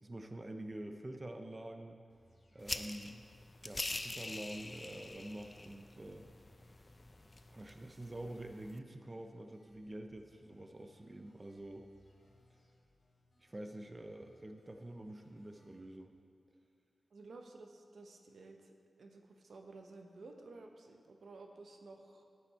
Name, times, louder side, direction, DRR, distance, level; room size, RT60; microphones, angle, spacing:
voice 1, 0.0-2.0 2.5-3.3 3.6-6.3 7.5-11.9 13.4-16.2, right 1 dB, 25° right, 5 dB, 0.6 m, -47 dB
sound 1, 2.1-15.8, left 1 dB, 45° left, 2.1 m, -70 dB
sound 2, 2.6-8.8, left 2 dB, 30° left, 0.4 m, -45 dB
voice 2, 17.1-22.2, right 3 dB, 80° right, 3 dB, 1.0 m, -54 dB
12.5 x 8.4 x 4.4 m, 2.4 s
wide cardioid pair, 110°, 0 cm